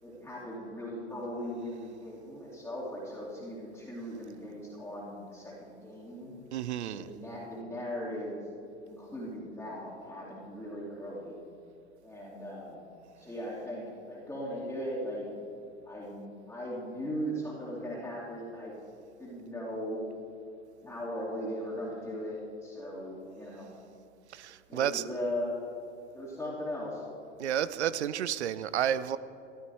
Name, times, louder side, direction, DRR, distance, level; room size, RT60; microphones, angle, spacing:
voice 1, 0.0-6.3 6.8-8.4 8.8-11.3 12.0-12.9 13.1-15.3 15.8-18.7 19.2-20.0 20.8-23.7 24.7-25.5 26.1-27.0, equal, 5° left, 2.6 m, -38 dB
voice 2, 6.5-7.1 24.3-25.0 27.4-29.2, right 10 dB, 70° right, 0.6 m, -31 dB
14.0 x 12.0 x 4.7 m
figure-of-eight pair, 85°, 35 cm